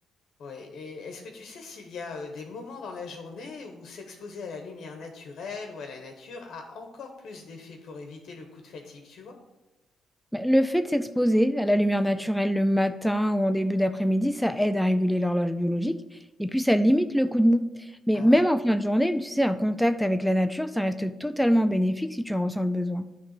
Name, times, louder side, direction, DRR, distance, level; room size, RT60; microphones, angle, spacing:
voice 1, 0.4-9.3 18.1-18.4, left 4 dB, 65° left, 3 dB, 1.1 m, -40 dB
voice 2, 10.3-16.0 16.4-23.1, equal, ahead, 10 dB, 0.4 m, -24 dB
9.6 x 3.4 x 6.6 m, 1.0 s
cardioid pair, 90°, 0 cm